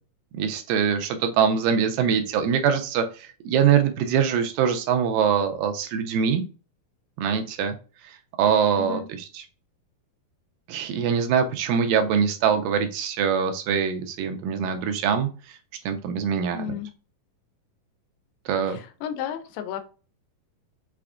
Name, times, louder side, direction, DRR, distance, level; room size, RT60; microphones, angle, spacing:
voice 1, 0.4-6.4 7.2-7.8 8.4-9.4 10.7-15.3 15.9-16.8 18.5-18.8, right 7 dB, 80° right, 7 dB, 2.0 m, -23 dB
voice 2, 8.8-9.1 16.5-16.9 18.6-19.8, left 9 dB, 80° left, 7 dB, 2.4 m, -33 dB
5.8 x 3.4 x 2.4 m, 0.36 s
omnidirectional pair, 4.2 m